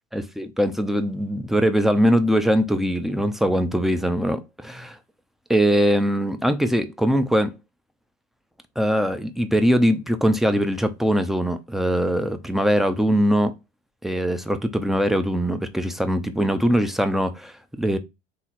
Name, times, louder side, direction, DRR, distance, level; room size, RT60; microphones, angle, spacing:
voice 1, 0.1-5.0 5.5-7.5 8.8-13.5 14.0-18.0, equal, ahead, 0.5 m, -21 dB
3.7 x 3.0 x 4.1 m
hypercardioid pair, 80°, 36 cm